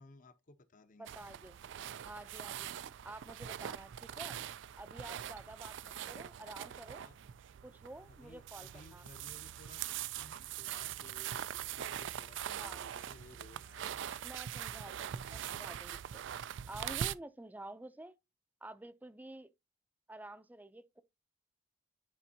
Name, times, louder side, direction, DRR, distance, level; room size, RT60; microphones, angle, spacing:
voice 1, 0.0-1.2 2.2-2.8 5.5-5.6 6.9-7.2 8.0-14.1 14.7-15.0, left 2 dB, 45° left, 0.7 m, -59 dB
voice 2, 1.0-1.6 2.0-4.4 4.8-7.1 7.6-9.0 12.6-12.8 14.2-16.2 16.7-18.2 18.6-19.5 20.1-21.0, right 1 dB, 10° right, 0.5 m, -50 dB
sound 1, 1.1-17.2, right 10 dB, 65° right, 0.3 m, -42 dB
9.9 x 4.3 x 2.8 m
head